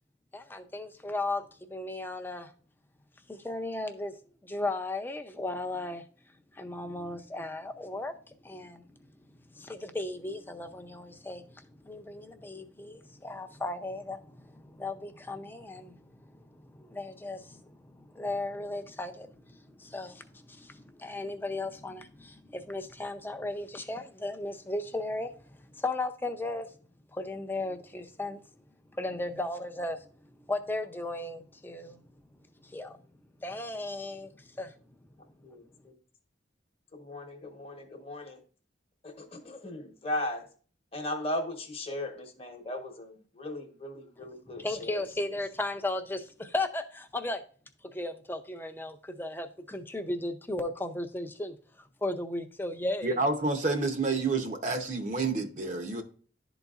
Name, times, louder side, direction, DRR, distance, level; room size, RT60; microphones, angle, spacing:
voice 1, 0.3-1.4 1.7-2.5 3.3-4.1 4.4-6.0 6.6-8.1 8.4-8.8 9.6-25.3 25.7-26.7 27.1-28.4 28.9-30.0 30.5-32.0 32.6-33.0 33.4-34.7 44.5-47.4 47.8-53.2, left 2 dB, 10° left, 0.5 m, -36 dB
voice 2, 35.4-36.0 36.9-38.4 39.0-40.5 40.9-45.0, left 1 dB, 30° left, 1.0 m, -37 dB
voice 3, 53.0-56.0, right 3 dB, 40° right, 0.7 m, -29 dB
11.5 x 4.0 x 2.4 m
head